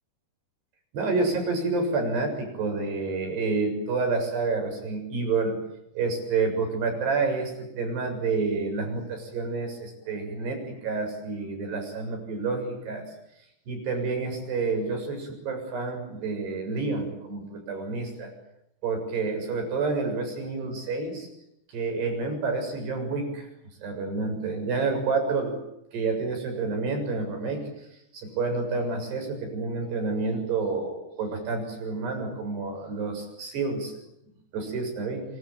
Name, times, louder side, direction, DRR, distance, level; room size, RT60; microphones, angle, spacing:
voice 1, 0.9-5.6 6.0-13.1 13.7-18.3 18.8-21.3 21.7-23.5 23.8-25.6 25.9-27.6 28.1-33.9 34.5-35.3, right 4 dB, 85° right, 5 dB, 9.1 m, -29 dB
26.5 x 24.5 x 9.1 m, 0.82 s
omnidirectional pair, 4.6 m